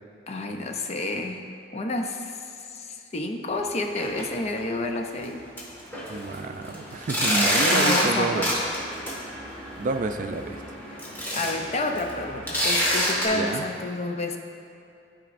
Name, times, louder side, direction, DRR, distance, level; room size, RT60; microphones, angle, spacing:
voice 1, 0.3-1.4 1.7-2.4 2.7-5.4 7.7-8.7 10.9-11.0 11.3-14.4, left 2 dB, 40° left, 4 dB, 0.5 m, -30 dB
sound 1, 3.8-4.2 4.6-4.7 5.2-5.3 5.6-13.2, equal, 10° left, 1.7 m, -27 dB
voice 2, 6.1-8.4 9.8-10.8 13.3-13.7, right 3 dB, 45° right, 6 dB, 0.4 m, -29 dB
14.0 x 5.0 x 2.5 m, 2.6 s
head